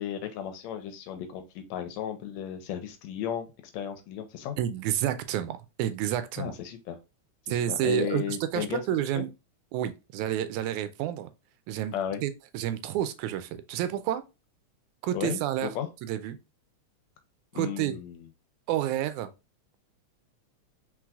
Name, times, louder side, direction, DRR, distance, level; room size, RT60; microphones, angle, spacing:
voice 1, 0.0-3.5 3.7-4.6 6.4-7.0 7.5-8.8 9.2-9.3 11.9-12.2 15.1-15.9 17.5-18.3, left 9 dB, 80° left, 1.8 m, -34 dB
voice 2, 4.6-6.5 7.5-9.3 9.7-11.3 11.7-11.9 12.2-14.2 15.0-15.7 16.0-16.4 17.6-18.0 18.7-19.3, right 11 dB, 85° right, 2.0 m, -29 dB
4.6 x 3.9 x 2.4 m
omnidirectional pair, 3.4 m